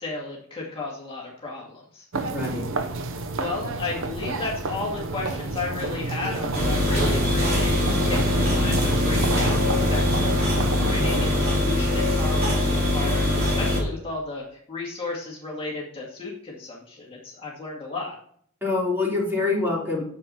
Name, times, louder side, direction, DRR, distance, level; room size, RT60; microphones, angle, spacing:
voice 1, 0.0-2.1 3.4-18.2, left 3 dB, 25° left, -4 dB, 2.3 m, -34 dB
voice 2, 2.1-2.8 18.6-20.0, left 3 dB, 10° right, -4 dB, 3.9 m, -26 dB
sound 1, 2.1-11.4, right 2 dB, 65° right, 0.9 m, -29 dB
sound 2, 6.5-13.8, left 1 dB, 45° right, 3.5 m, -22 dB
9.6 x 7.1 x 4.2 m, 0.63 s
head